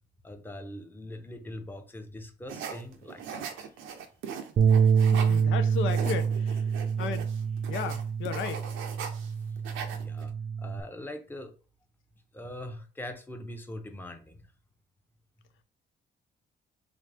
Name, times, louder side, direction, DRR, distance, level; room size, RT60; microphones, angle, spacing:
voice 1, 0.2-3.7 10.0-11.5 12.3-14.4, left 1 dB, 10° left, 0.7 m, -42 dB
sound 1, 2.5-5.4 5.7-9.3 9.6-10.3, right 7 dB, 90° right, 0.7 m, -40 dB
Bass guitar, 4.6-10.8, right 6 dB, 45° right, 0.5 m, -26 dB
voice 2, 5.0-6.7 7.0-7.3 7.7-8.7, left 7 dB, 80° left, 0.5 m, -35 dB
3.9 x 2.7 x 3.4 m
cardioid pair, 90°, 20 cm